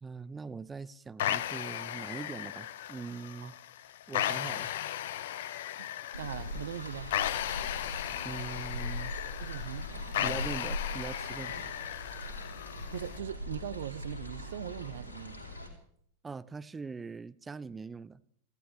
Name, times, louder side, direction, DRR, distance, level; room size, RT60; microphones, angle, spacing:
voice 1, 0.0-3.5 4.1-4.7 8.2-9.1 10.2-11.5 16.2-18.2, right 4 dB, 15° right, 0.5 m, -42 dB
sound 1, 1.2-13.2, left 12 dB, 55° left, 0.6 m, -36 dB
voice 2, 5.8-7.1 9.4-10.6 12.9-15.5, right 11 dB, 60° right, 0.6 m, -41 dB
sound 2, 6.1-15.7, left 2 dB, 75° left, 3.5 m, -40 dB
27.0 x 15.0 x 3.4 m
figure-of-eight pair, 90°, 0 cm